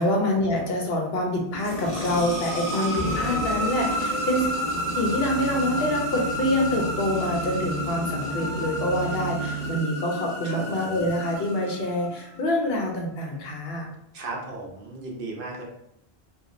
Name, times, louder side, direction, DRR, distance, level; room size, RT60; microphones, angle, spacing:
voice 1, 0.0-4.5 4.9-13.9, left 1 dB, 70° left, 1 dB, 0.9 m, -26 dB
sound 1, 1.5-12.3, equal, 15° left, 0.9 m, -31 dB
sound 2, 1.6-9.8, right 2 dB, 45° left, 0.8 m, -35 dB
voice 2, 10.4-11.1 14.1-15.6, right 3 dB, 65° right, -1 dB, 0.7 m, -36 dB
2.9 x 2.4 x 2.5 m, 0.77 s
omnidirectional pair, 1.1 m